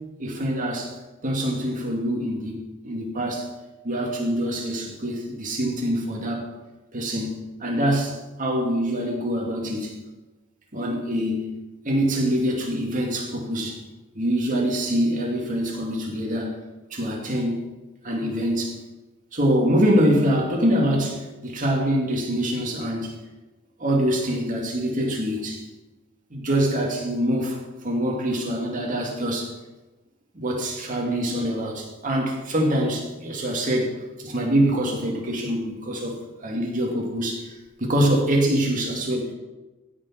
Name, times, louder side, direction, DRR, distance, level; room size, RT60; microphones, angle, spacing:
voice 1, 0.2-0.9 1.2-3.5 3.8-6.5 6.9-9.9 10.7-11.5 11.8-13.8 14.1-16.6 16.9-17.6 18.0-18.8 19.3-23.2 23.8-25.6 26.3-27.6 27.8-29.5 30.3-33.9 34.2-37.5 37.8-39.3, equal, 40° right, -1 dB, 2.2 m, -24 dB
15.5 x 6.3 x 4.5 m, 1.1 s
head